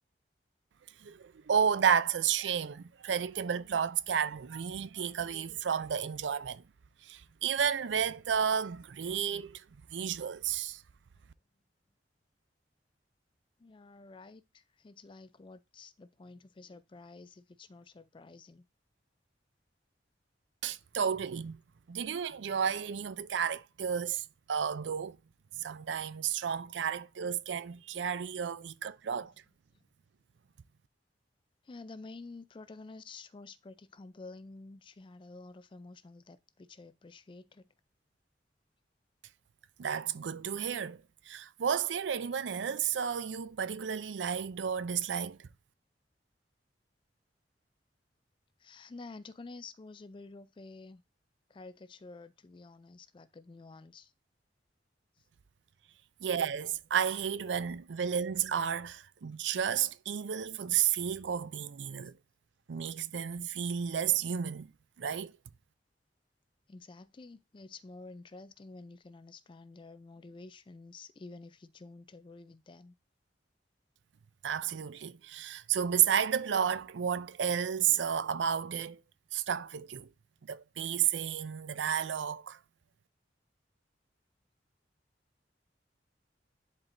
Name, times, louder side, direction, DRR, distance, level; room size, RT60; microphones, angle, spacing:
voice 1, 1.0-6.6 7.0-9.6 9.9-10.8 20.6-21.6 21.9-25.2 25.6-29.3 39.8-41.0 41.3-45.4 56.2-62.2 62.7-64.7 65.0-65.3 74.4-79.0 79.3-80.1 80.5-82.6, right 8 dB, 85° right, 0.4 m, -32 dB
voice 2, 13.6-18.6 31.6-37.7 48.6-51.0 51.5-54.1 66.7-72.9, left 3 dB, 30° left, 0.4 m, -50 dB
10.5 x 4.4 x 2.6 m
head